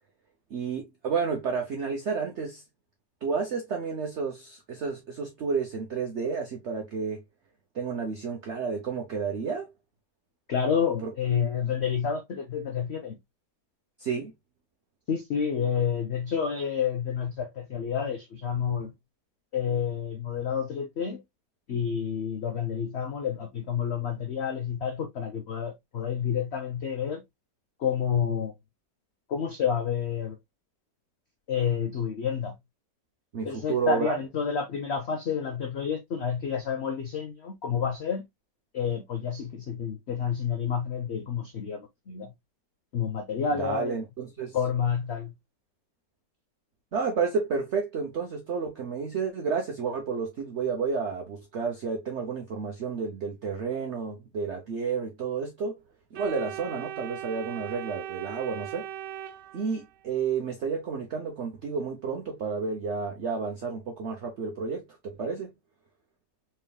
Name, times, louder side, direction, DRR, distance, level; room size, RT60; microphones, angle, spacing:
voice 1, 0.5-2.6 3.2-7.2 7.7-9.7 11.0-11.1 14.0-14.3 33.3-34.2 43.5-44.6 46.9-55.8 56.1-58.9 59.5-65.5, right 5 dB, 50° right, 0.9 m, -31 dB
voice 2, 10.5-13.2 15.1-18.9 19.5-21.2 21.7-27.2 27.8-28.5 29.3-30.4 31.5-32.6 33.4-38.3 38.7-42.3 42.9-44.0 44.5-45.3, left 7 dB, 65° left, 0.6 m, -29 dB
Organ, 56.1-60.1, right 11 dB, 75° right, 1.2 m, -39 dB
4.4 x 3.7 x 2.2 m
omnidirectional pair, 1.9 m